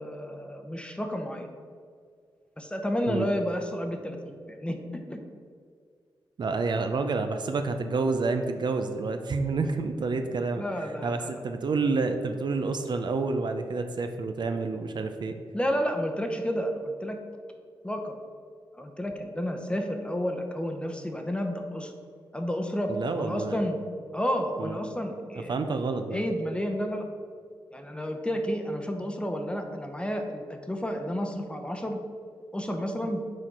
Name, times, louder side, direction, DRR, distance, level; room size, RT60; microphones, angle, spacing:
voice 1, 0.0-1.5 2.6-4.2 4.5-5.2 10.6-11.4 15.5-17.2 17.8-18.1 18.7-21.9 22.3-22.9 23.2-23.8 24.1-25.5 26.1-27.1 27.7-32.0 32.5-33.2, equal, 10° left, 4 dB, 0.8 m, -31 dB
voice 2, 6.4-10.6 11.0-15.4 22.9-23.6 24.6-24.8 25.5-26.2, right 4 dB, 55° right, 7 dB, 0.5 m, -29 dB
6.4 x 4.3 x 4.7 m, 2.1 s
cardioid pair, 65°, 9 cm